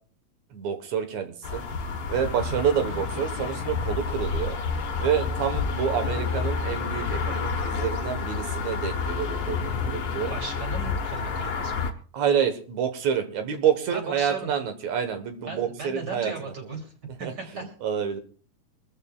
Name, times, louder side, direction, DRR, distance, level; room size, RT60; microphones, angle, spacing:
voice 1, 0.5-1.6 2.1-4.6 5.0-10.3 12.1-16.3 17.2-17.3 17.8-18.2, right 8 dB, 70° right, 7 dB, 2.7 m, -28 dB
sound 1, 1.4-11.9, left 5 dB, 55° left, 1.8 m, -29 dB
voice 2, 2.5-2.8 10.2-11.9 13.9-14.6 15.5-17.7, right 3 dB, 35° right, 3 dB, 3.5 m, -37 dB
25.0 x 13.5 x 2.4 m, 0.40 s
omnidirectional pair, 3.4 m